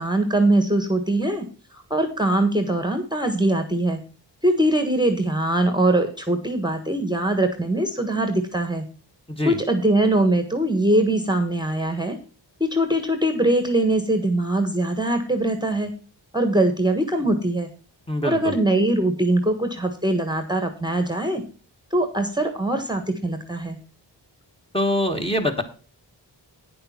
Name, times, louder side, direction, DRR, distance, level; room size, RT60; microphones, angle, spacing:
voice 1, 0.0-1.5 1.7-4.0 4.4-8.8 9.4-12.2 12.6-15.9 16.3-17.7 18.2-21.4 21.9-23.8, right 1 dB, 10° right, 7 dB, 1.4 m, -22 dB
voice 2, 18.1-18.5 24.7-25.6, left 1 dB, 10° left, 3 dB, 1.7 m, -24 dB
9.7 x 6.8 x 5.8 m, 0.37 s
wide cardioid pair, 90°, 44 cm